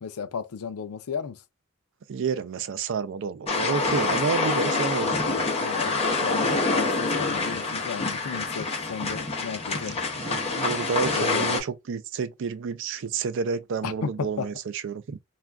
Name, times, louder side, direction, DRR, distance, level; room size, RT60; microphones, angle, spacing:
voice 1, 0.0-1.4 5.6-10.0 11.1-11.6 13.8-14.5, left 6 dB, 90° left, 0.5 m, -34 dB
voice 2, 2.1-5.3 10.2-15.2, right 5 dB, 60° right, 0.4 m, -30 dB
sound 1, 3.5-11.6, left 3 dB, 30° left, 0.8 m, -26 dB
2.4 x 2.2 x 3.4 m
head